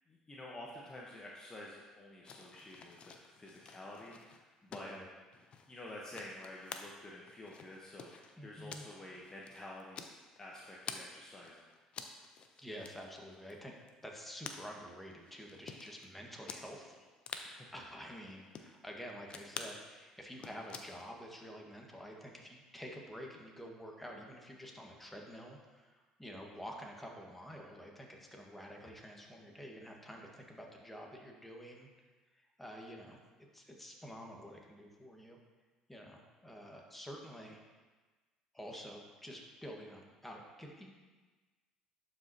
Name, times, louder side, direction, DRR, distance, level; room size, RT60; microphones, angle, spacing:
voice 1, 0.1-4.9 5.7-10.0 10.4-11.7 17.4-17.7, left 1 dB, 25° left, -3 dB, 1.1 m, -50 dB
sound 1, 2.3-11.1 11.4-16.0 16.5-16.6 16.9-17.0 17.2-17.5 18.1-18.8 19.3-19.8 20.2-21.1, left 6 dB, 50° left, 0.7 m, -49 dB
voice 2, 4.7-5.1 8.4-8.9 12.6-13.7 14.0-17.1 17.7-31.9 32.3-35.4 35.9-37.6 38.5-40.9, equal, 5° left, 0 dB, 1.6 m, -49 dB
11.5 x 5.2 x 2.9 m, 1.3 s
hypercardioid pair, 70°, 2 cm